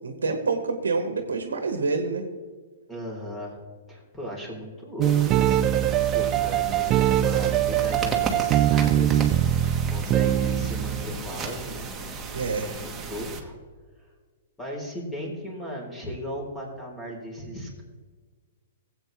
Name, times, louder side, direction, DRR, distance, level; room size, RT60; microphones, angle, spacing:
voice 1, 0.0-2.2 12.3-12.8, right 4 dB, 85° right, 7 dB, 1.2 m, -27 dB
voice 2, 2.9-3.6 3.9-11.9 12.5-13.5 14.6-17.8, equal, 10° left, -2 dB, 3.9 m, -37 dB
sound 1, 5.0-13.4, right 4 dB, 15° right, 1.6 m, -35 dB
sound 2, 5.0-11.1, right 11 dB, 30° right, 0.4 m, -22 dB
17.5 x 8.3 x 3.4 m, 1.5 s
hypercardioid pair, 125°, 0 cm